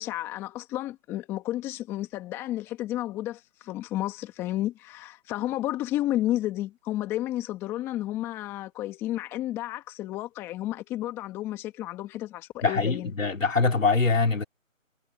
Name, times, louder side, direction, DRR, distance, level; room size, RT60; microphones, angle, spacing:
voice 1, 0.0-13.1, left 14 dB, 5° left, 1.8 m, -32 dB
voice 2, 12.6-14.4, left 4 dB, 65° left, 3.4 m, -23 dB
figure-of-eight pair, 160°, 41 cm